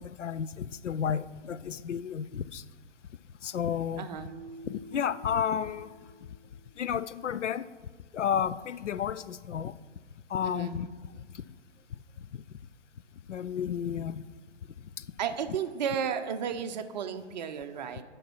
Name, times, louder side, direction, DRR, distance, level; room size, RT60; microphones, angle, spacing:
voice 1, 0.0-2.6 3.4-4.1 4.7-5.9 6.8-7.7 8.1-9.7 10.3-10.9 12.3-12.4 13.3-14.2, left 8 dB, 85° left, 16 dB, 0.5 m, -32 dB
voice 2, 4.0-4.3 10.4-10.8 15.2-18.0, right 7 dB, 40° right, 8 dB, 0.6 m, -33 dB
Keyboard (musical), 4.2-7.0, right 1 dB, 10° right, 2.4 m, -50 dB
9.0 x 5.4 x 6.1 m, 1.5 s
figure-of-eight pair, 130°, 36 cm